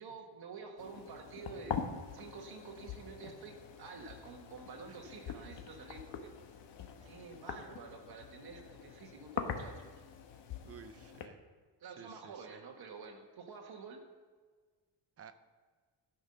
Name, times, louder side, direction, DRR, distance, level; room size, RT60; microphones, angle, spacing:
voice 1, 0.0-1.8 2.1-6.3 7.0-10.0 11.8-14.1, right 4 dB, 55° right, 3 dB, 1.6 m, -49 dB
sound 1, 0.8-11.3, left 7 dB, 70° left, 1.1 m, -44 dB
voice 2, 10.6-11.4 12.0-12.6 15.2-15.3, right 6 dB, 35° right, 10 dB, 0.6 m, -54 dB
12.5 x 5.7 x 6.7 m, 1.5 s
cardioid pair, 155°, 44 cm